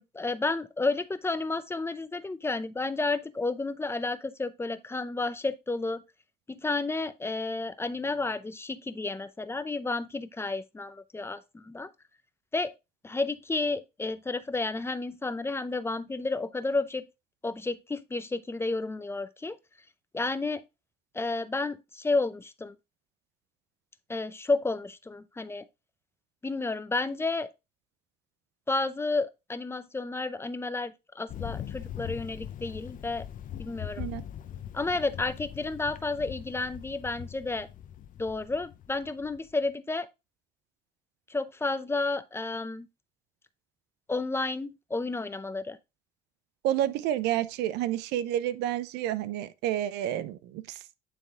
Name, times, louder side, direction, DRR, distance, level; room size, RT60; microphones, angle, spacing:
voice 1, 0.0-6.0 6.5-11.9 12.5-12.7 13.0-17.1 17.4-19.6 20.1-20.6 21.1-22.7 24.1-25.7 26.4-27.5 28.7-33.3 33.6-34.1 34.7-37.7 38.2-40.1 41.3-42.9 44.1-45.8, left 3 dB, 15° left, 0.6 m, -31 dB
Thunder, 31.3-39.5, left 10 dB, 50° left, 0.6 m, -41 dB
voice 2, 46.6-50.8, right 12 dB, 90° right, 0.6 m, -29 dB
9.4 x 3.5 x 3.6 m
cardioid pair, 110°, 17 cm